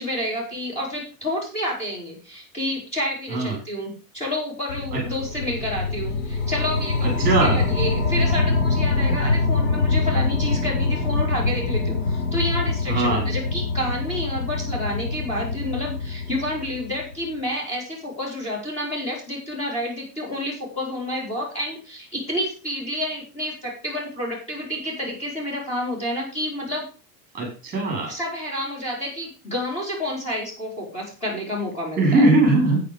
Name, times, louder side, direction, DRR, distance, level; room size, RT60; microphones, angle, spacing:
voice 1, 0.0-26.9 28.1-32.3, left 1 dB, 15° left, -4 dB, 4.7 m, -29 dB
sound 1, 4.7-17.2, left 3 dB, 70° left, 6.7 m, -24 dB
voice 2, 7.0-7.6 12.9-13.2 27.3-28.1 32.0-32.8, right 2 dB, 20° right, 2 dB, 4.6 m, -20 dB
10.0 x 9.3 x 5.2 m, 0.35 s
supercardioid pair, 175°, 47 cm